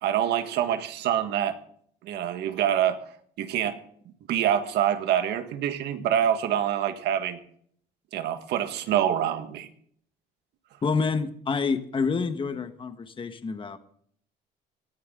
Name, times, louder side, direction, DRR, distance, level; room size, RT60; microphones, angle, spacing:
voice 1, 0.0-1.6 2.0-3.0 3.4-3.8 4.3-7.4 8.1-9.7, right 10 dB, 80° right, 8 dB, 1.6 m, -26 dB
voice 2, 10.8-13.8, left 4 dB, 30° left, 9 dB, 1.4 m, -28 dB
19.0 x 14.0 x 3.8 m, 0.62 s
cardioid pair, 110°, 17 cm